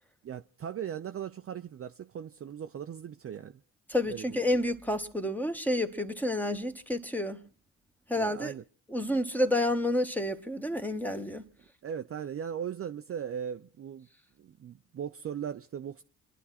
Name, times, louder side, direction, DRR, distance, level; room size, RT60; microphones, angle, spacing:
voice 1, 0.2-3.6 4.1-4.3 8.2-8.6 11.8-14.1 14.4-16.0, right 8 dB, 35° right, 0.7 m, -38 dB
voice 2, 3.9-7.4 8.1-8.5 8.9-11.4, left 1 dB, 5° left, 1.5 m, -29 dB
29.0 x 11.0 x 4.2 m
hypercardioid pair, 50°, 38 cm